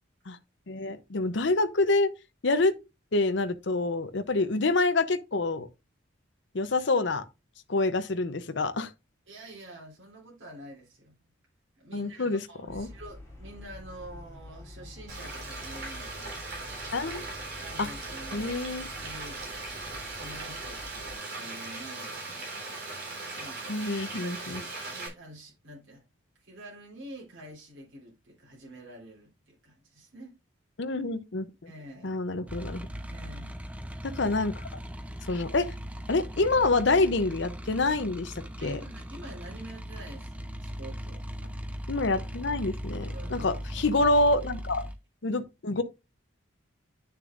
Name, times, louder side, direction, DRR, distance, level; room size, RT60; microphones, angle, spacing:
voice 1, 0.7-2.1 2.4-2.7 3.1-5.7 6.5-7.2 7.7-8.9 11.9-12.4 12.7-12.9 16.9-17.3 17.8-17.9 18.3-18.8 23.7-24.6 30.8-31.5 32.0-32.9 34.0-34.7 35.3-35.7 36.1-38.8 41.9-44.9 45.2-45.8, left 2 dB, 65° left, 0.7 m, -27 dB
voice 2, 9.3-11.2 11.8-16.5 17.5-18.5 19.0-19.4 19.9-22.5 23.3-26.0 26.4-30.4 31.7-32.2 33.1-33.6 33.9-34.1 38.6-41.3 43.1-44.0, right 1 dB, 80° right, 3.6 m, -47 dB
sound 1, 12.7-21.1, left 1 dB, 15° left, 3.2 m, -47 dB
Frying (food), 15.1-25.1, right 3 dB, 50° right, 3.6 m, -39 dB
sound 2, 32.5-44.9, equal, 5° right, 0.7 m, -39 dB
9.5 x 6.6 x 2.5 m
head